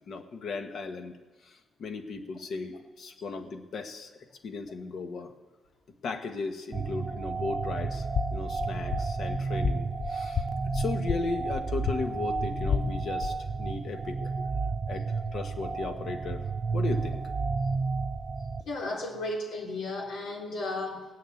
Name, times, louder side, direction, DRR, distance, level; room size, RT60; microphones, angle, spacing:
voice 1, 0.1-1.2 1.4-4.1 4.4-5.3 6.0-8.1 8.3-10.5 10.7-14.2 14.9-16.4 16.7-17.2, left 4 dB, 60° left, 6 dB, 1.4 m, -36 dB
sound 1, 6.7-18.6, right 4 dB, 40° right, 0.6 m, -32 dB
sound 2, 8.0-13.4, left 6 dB, 45° left, 0.6 m, -33 dB
voice 2, 18.6-21.1, left 2 dB, 85° left, -2 dB, 3.5 m, -34 dB
18.5 x 6.6 x 9.1 m, 1.3 s
cardioid pair, 105°, 0 cm